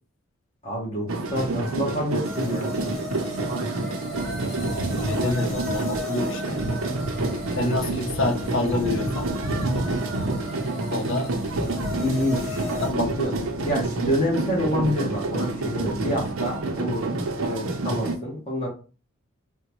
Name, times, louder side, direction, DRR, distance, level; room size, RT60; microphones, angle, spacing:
voice 1, 0.6-2.8 12.0-12.8 13.6-17.1 17.5-18.7, equal, 30° left, 0.9 m, -27 dB
sound 1, 1.1-18.2, right 2 dB, 75° right, 0.6 m, -28 dB
sound 2, 2.2-12.9, left 3 dB, ahead, 0.9 m, -37 dB
voice 2, 4.9-6.6 7.6-9.3 10.9-11.3 12.8-13.4, left 2 dB, 65° left, 0.6 m, -27 dB
3.7 x 2.2 x 2.9 m
head